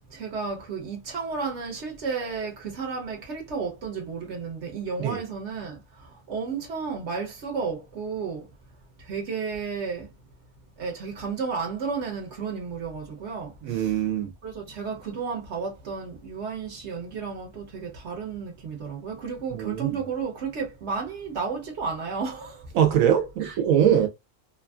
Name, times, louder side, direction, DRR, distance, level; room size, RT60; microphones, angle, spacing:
voice 1, 0.1-8.5 9.0-10.1 10.8-14.1 14.4-22.7 23.4-23.6, right 5 dB, 60° right, 1.0 m, -33 dB
voice 2, 13.6-14.3 19.5-19.9 22.8-24.1, right 9 dB, 85° right, 1.1 m, -22 dB
2.8 x 2.5 x 2.2 m
omnidirectional pair, 1.4 m